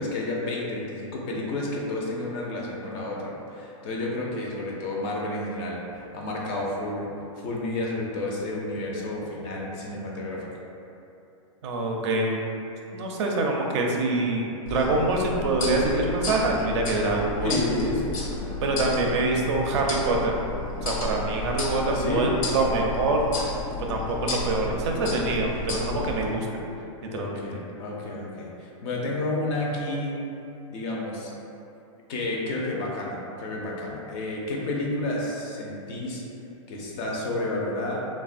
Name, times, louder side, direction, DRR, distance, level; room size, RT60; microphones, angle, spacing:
voice 1, 0.0-7.1 7.4-10.5 17.4-18.6 21.9-22.3 27.1-30.2 30.7-31.3 32.1-36.2 36.7-38.0, left 2 dB, 35° left, -3 dB, 0.4 m, -30 dB
voice 2, 11.6-12.4 12.9-17.5 18.6-20.3 20.8-23.2 23.9-26.5 27.1-27.4, right 2 dB, 55° right, 0 dB, 0.4 m, -25 dB
sound 1, 14.7-26.3, left 2 dB, 75° left, 0.8 m, -32 dB
3.2 x 2.1 x 2.4 m, 2.8 s
hypercardioid pair, 145°, 17 cm